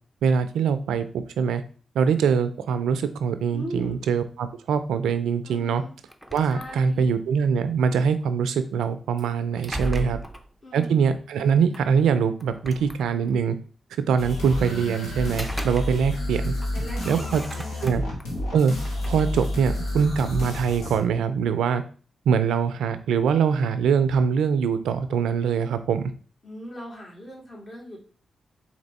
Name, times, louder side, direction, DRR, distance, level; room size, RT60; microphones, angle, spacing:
voice 1, 0.2-1.6 1.9-5.8 6.3-10.2 10.7-13.6 14.1-16.5 17.1-17.4 17.8-18.0 18.5-18.7 19.1-21.8 22.3-26.1, right 6 dB, 90° right, 11 dB, 0.4 m, -23 dB
voice 2, 3.5-4.0 5.4-5.9 6.4-7.2 9.7-10.2 10.6-11.1 16.7-17.9 26.4-28.0, equal, 40° left, -3 dB, 2.6 m, -39 dB
sound 1, 6.1-7.2 9.2-10.5 11.7-11.8 12.4-13.5 15.1-16.3 16.6-18.3 18.7-20.4, right 1 dB, 5° left, 0.6 m, -36 dB
sound 2, 14.2-21.0, left 1 dB, 85° left, 1.5 m, -30 dB
4.2 x 3.0 x 4.0 m, 0.39 s
supercardioid pair, 50°, 0 cm